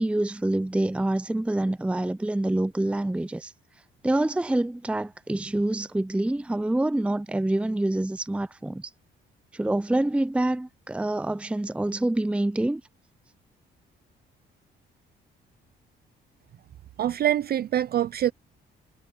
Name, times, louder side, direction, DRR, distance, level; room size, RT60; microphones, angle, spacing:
voice 1, 0.0-3.5 4.0-8.9 9.5-12.8, right 1 dB, 5° right, 0.6 m, -26 dB
voice 2, 17.0-18.3, right 11 dB, 50° right, 0.4 m, -24 dB
cardioid pair, 90°, 20 cm